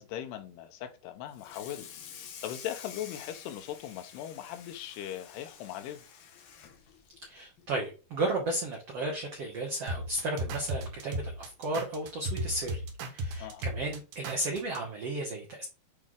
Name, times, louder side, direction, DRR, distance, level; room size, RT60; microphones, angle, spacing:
voice 1, 0.0-1.9 2.1-6.0 13.4-13.7, left 11 dB, 90° left, 2.9 m, -39 dB
Water tap faucet / Sink (filling or washing), 1.3-8.0 8.3-8.6 8.9-9.0 9.5-9.6 10.7-10.8 11.2-11.5, left 8 dB, 70° left, 2.6 m, -49 dB
voice 2, 7.2-15.6, right 2 dB, 90° right, 1.3 m, -34 dB
sound 1, 9.9-14.8, right 1 dB, 70° right, 2.5 m, -35 dB
8.4 x 3.1 x 3.6 m
omnidirectional pair, 4.6 m